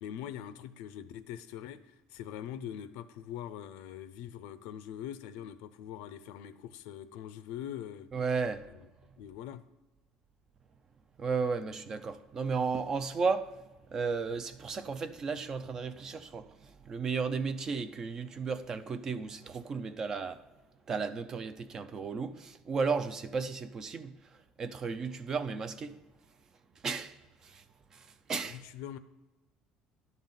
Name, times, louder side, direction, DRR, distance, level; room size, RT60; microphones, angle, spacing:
voice 1, 0.0-8.1 8.7-8.9 9.2-9.6 28.4-29.0, left 10 dB, 80° left, 0.5 m, -43 dB
voice 2, 8.1-8.7 11.2-13.6 13.9-20.4 20.9-24.1 24.6-26.0 26.8-27.2 27.4-27.6 27.9-28.6, right 5 dB, 25° right, 0.4 m, -34 dB
11.0 x 4.0 x 7.3 m
cardioid pair, 175°, 2 cm